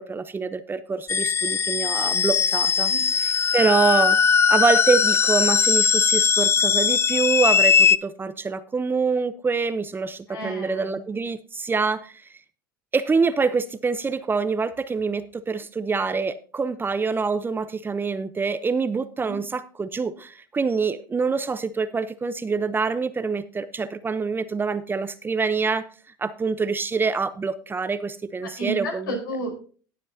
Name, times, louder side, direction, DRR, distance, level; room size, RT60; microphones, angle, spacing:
voice 1, 0.0-4.2 4.5-12.1 12.9-25.9 26.2-29.2, right 4 dB, 20° right, 13 dB, 0.7 m, -25 dB
sound 1, 1.1-8.0, left 6 dB, 20° left, 0.5 m, -20 dB
voice 2, 10.3-11.0 19.2-19.4 28.4-29.6, right 1 dB, 80° left, 2 dB, 4.9 m, -32 dB
18.5 x 7.3 x 2.8 m, 0.40 s
hypercardioid pair, 90°, 11 cm